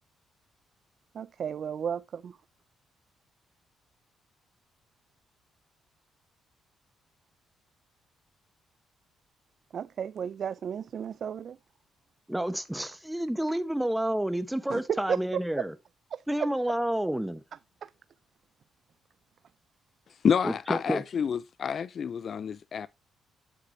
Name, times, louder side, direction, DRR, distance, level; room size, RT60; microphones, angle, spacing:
voice 1, 1.1-2.4 9.7-11.6 14.7-15.2 16.1-16.5 17.8-17.9, right 8 dB, 55° right, 0.3 m, -34 dB
voice 2, 12.3-15.7 16.3-17.4 20.4-21.0, right 1 dB, 5° right, 1.0 m, -29 dB
voice 3, 20.2-22.9, left 7 dB, 50° left, 0.3 m, -28 dB
8.3 x 8.1 x 2.6 m
cardioid pair, 90°, 0 cm